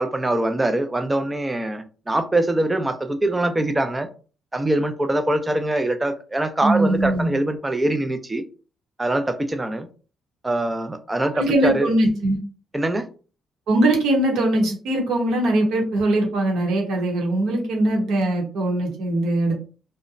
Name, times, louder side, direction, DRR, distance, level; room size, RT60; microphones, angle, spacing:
voice 1, 0.0-4.1 4.5-8.4 9.0-9.9 10.4-11.9 12.7-13.1, right 1 dB, 15° right, 0.4 m, -23 dB
voice 2, 6.6-7.3 11.3-12.4 13.7-19.5, right 1 dB, 85° right, 1.0 m, -21 dB
2.9 x 2.1 x 2.5 m
cardioid pair, 115°, 0 cm